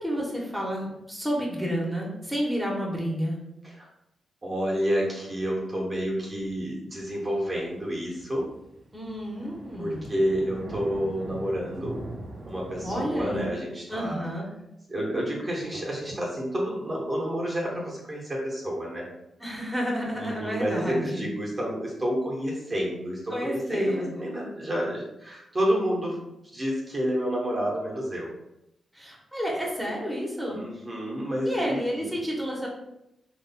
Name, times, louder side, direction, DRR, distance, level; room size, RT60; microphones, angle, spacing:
voice 1, 0.0-3.4 8.9-10.1 12.8-13.5 13.9-14.5 19.4-21.2 23.3-24.2 28.9-30.6 31.4-32.7, equal, ahead, -4 dB, 1.1 m, -30 dB
voice 2, 4.4-8.5 9.8-12.0 12.5-14.3 14.9-19.1 20.1-26.2 26.5-28.3 30.5-32.1, equal, 35° right, -3 dB, 1.0 m, -29 dB
sound 1, 7.2-13.4, right 1 dB, 60° right, 0.8 m, -41 dB
4.0 x 3.0 x 2.2 m, 0.86 s
cardioid pair, 70°, 0 cm